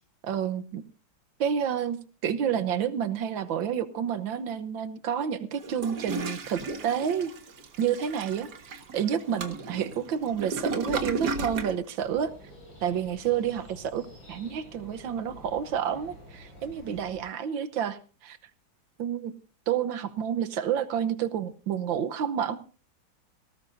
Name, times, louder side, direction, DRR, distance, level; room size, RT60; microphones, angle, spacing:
voice 1, 0.2-0.8 1.4-7.3 7.8-12.3 12.8-18.4 19.0-19.3 19.7-22.6, right 8 dB, 75° right, 13 dB, 1.7 m, -29 dB
Toilet flush, 5.6-11.8, right 3 dB, 60° right, 2.1 m, -35 dB
sound 1, 12.0-17.2, equal, 85° left, 9.0 m, -49 dB
18.5 x 17.5 x 2.7 m, 0.37 s
omnidirectional pair, 2.1 m